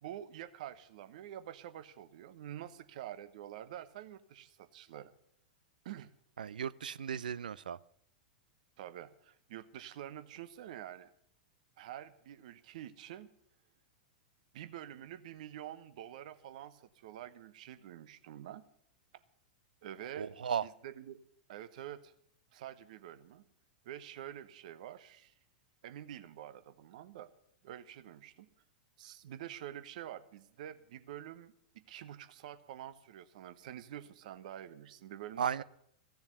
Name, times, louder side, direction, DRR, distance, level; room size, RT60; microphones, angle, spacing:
voice 1, 0.0-5.1 5.8-6.1 8.8-11.1 11.8-13.3 14.5-18.6 19.8-20.3 20.6-21.2 21.5-22.1 22.5-23.5 23.8-25.3 25.8-27.3 27.6-28.5 29.0-35.6, right 11 dB, 60° right, 12 dB, 1.0 m, -47 dB
voice 2, 6.4-7.8 20.2-20.6 35.4-35.6, right 8 dB, 75° right, 18 dB, 0.5 m, -35 dB
15.5 x 7.1 x 9.5 m, 0.70 s
figure-of-eight pair, 100°, 5 cm